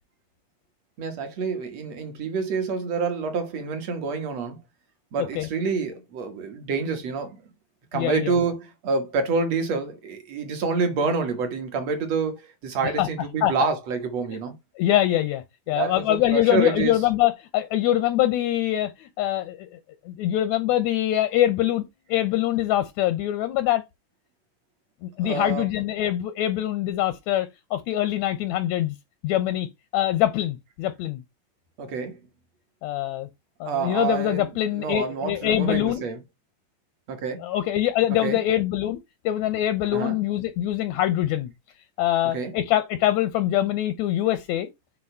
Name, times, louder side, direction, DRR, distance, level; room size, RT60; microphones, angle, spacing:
voice 1, 1.0-4.6 5.1-7.4 7.9-14.6 15.7-17.0 25.2-25.7 31.8-32.2 33.6-36.2 37.1-37.4 38.2-38.4 39.9-40.2 42.3-42.5, right 4 dB, 55° right, 2.2 m, -27 dB
voice 2, 5.2-5.5 7.9-8.4 13.0-13.1 13.4-13.7 14.8-19.8 20.0-23.8 25.0-28.9 29.2-29.7 29.9-31.2 32.8-33.3 33.6-36.0 37.4-39.0 39.2-41.5 42.0-44.7, left 13 dB, 80° left, 1.6 m, -24 dB
8.1 x 2.7 x 5.5 m
omnidirectional pair, 4.0 m